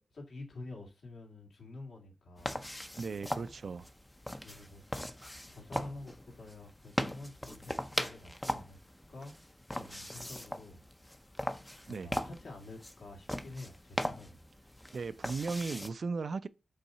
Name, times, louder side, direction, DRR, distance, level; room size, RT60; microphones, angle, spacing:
voice 1, 0.1-2.6 4.4-4.8 5.5-8.8 9.1-9.3 9.7-10.8 11.9-14.5, left 2 dB, 65° left, 2.3 m, -48 dB
sound 1, 2.4-15.9, left 1 dB, 10° left, 0.5 m, -40 dB
voice 2, 3.0-3.9 11.9-12.1 14.9-16.5, right 4 dB, 50° right, 0.3 m, -36 dB
5.4 x 4.0 x 5.5 m
wide cardioid pair, 170°, 0 cm